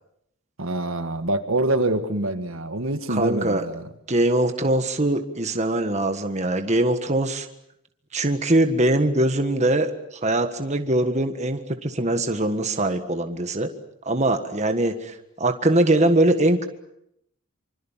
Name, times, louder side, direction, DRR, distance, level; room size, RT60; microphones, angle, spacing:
voice 1, 0.6-3.8, right 2 dB, 65° right, 9 dB, 1.8 m, -25 dB
voice 2, 3.1-3.6 4.1-7.5 8.1-13.7 14.0-16.7, right 1 dB, 30° right, 7 dB, 1.6 m, -22 dB
26.0 x 25.5 x 7.4 m, 0.78 s
head